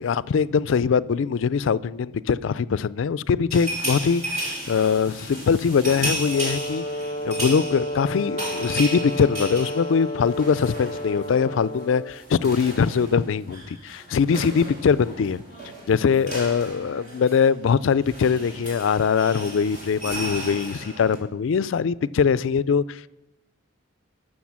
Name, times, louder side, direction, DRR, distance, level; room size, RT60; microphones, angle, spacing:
voice 1, 0.0-6.8 7.2-15.4 15.9-23.1, left 6 dB, 70° left, 0.4 m, -22 dB
sound 1, 3.5-11.4 11.6-11.8 12.1-21.2, right 1 dB, 35° right, 3.2 m, -34 dB
Brass instrument, 6.2-12.2, equal, 30° left, 0.7 m, -32 dB
13.5 x 6.3 x 7.3 m
head